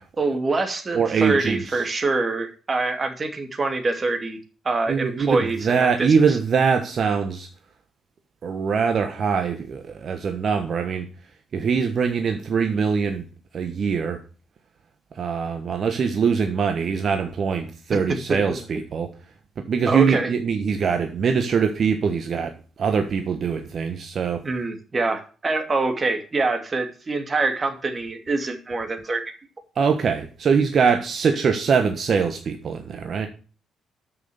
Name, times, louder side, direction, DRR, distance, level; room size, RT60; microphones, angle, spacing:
voice 1, 0.2-4.4 4.6-6.4 18.3-18.6 19.9-20.3 24.4-29.3, right 3 dB, 35° right, 2.4 m, -25 dB
voice 2, 0.9-1.8 4.9-7.5 8.4-11.1 11.5-13.2 13.5-14.2 15.1-19.1 19.6-24.4 29.7-33.3, right 6 dB, 55° right, 1.3 m, -23 dB
9.5 x 6.5 x 7.0 m
hypercardioid pair, 50°, 0 cm